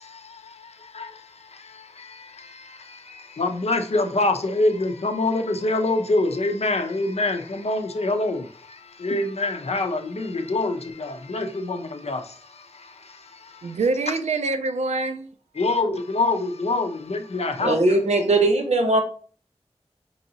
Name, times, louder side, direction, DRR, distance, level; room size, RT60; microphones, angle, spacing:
voice 1, 0.0-14.2 15.6-17.8, left 2 dB, 65° left, 0.6 m, -26 dB
voice 2, 13.6-15.3, right 3 dB, 90° right, 0.4 m, -25 dB
voice 3, 17.6-19.0, right 2 dB, 75° right, 0.8 m, -19 dB
4.7 x 2.7 x 2.7 m
wide cardioid pair, 40°, 11 cm